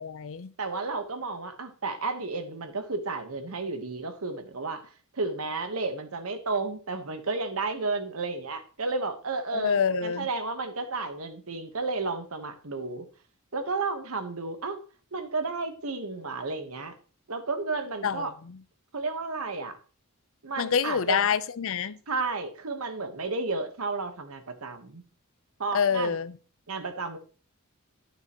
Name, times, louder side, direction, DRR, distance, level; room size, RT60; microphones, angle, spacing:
voice 1, 0.0-0.5 9.5-10.3 18.0-18.6 20.6-22.0 25.7-26.4, left 6 dB, 65° left, 0.6 m, -27 dB
voice 2, 0.6-13.1 13.5-14.8 15.1-16.9 17.3-18.3 18.9-19.8 20.4-21.2 22.1-25.0 25.6-26.2 26.7-27.2, right 3 dB, 70° right, 1.3 m, -32 dB
12.0 x 6.7 x 3.0 m
head